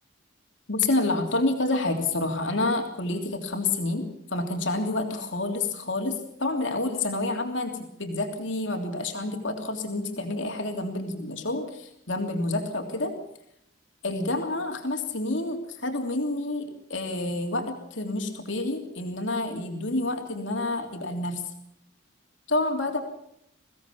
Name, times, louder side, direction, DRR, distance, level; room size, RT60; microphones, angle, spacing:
voice 1, 0.7-7.7 8.0-13.1 14.0-21.4 22.5-23.0, left 2 dB, 65° left, 3 dB, 3.2 m, -28 dB
23.0 x 17.0 x 7.1 m, 0.74 s
head